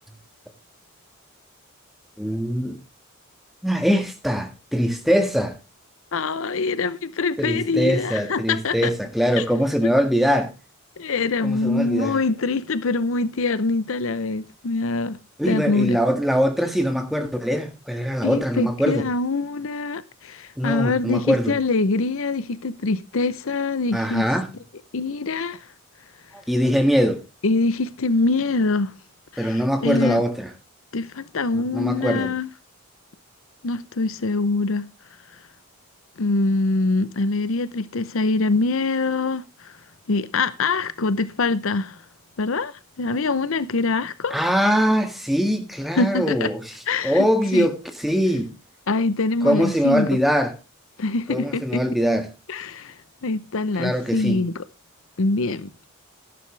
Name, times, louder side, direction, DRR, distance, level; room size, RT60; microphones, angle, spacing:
voice 1, 2.2-2.8 3.6-5.6 7.4-10.5 11.4-12.2 15.4-19.1 20.6-21.6 23.9-24.5 26.5-27.2 29.4-30.5 31.5-32.3 44.3-46.6 47.0-48.5 49.4-50.5 51.3-52.3 53.8-54.4, equal, ahead, 1.6 m, -22 dB
voice 2, 6.1-8.9 9.4-9.5 11.0-15.2 15.4-16.0 18.2-24.3 24.9-25.7 27.4-28.9 29.3-30.2 30.9-32.5 33.6-34.9 36.2-39.8 40.1-42.0 42.4-44.3 46.0-46.5 46.9-47.3 47.5-47.7 48.9-50.2 51.0-51.8 52.5-54.6 55.2-55.7, left 3 dB, 65° left, 0.7 m, -24 dB
12.5 x 11.0 x 3.2 m
head